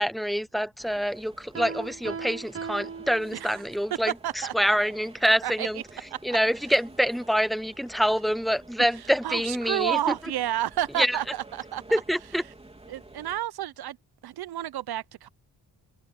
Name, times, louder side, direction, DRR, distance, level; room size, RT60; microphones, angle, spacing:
voice 1, 0.0-5.8 6.2-10.2 11.0-11.2 11.9-12.4, equal, ahead, 0.4 m, -26 dB
sound 1, 0.8-13.4, right 2 dB, 15° right, 3.6 m, -51 dB
Piano, 1.5-3.8, right 5 dB, 35° right, 0.9 m, -38 dB
voice 2, 4.2-4.5 5.4-5.7 9.2-11.8 12.9-14.0 14.2-15.3, right 12 dB, 70° right, 0.8 m, -30 dB
wide cardioid pair, 115°, 39 cm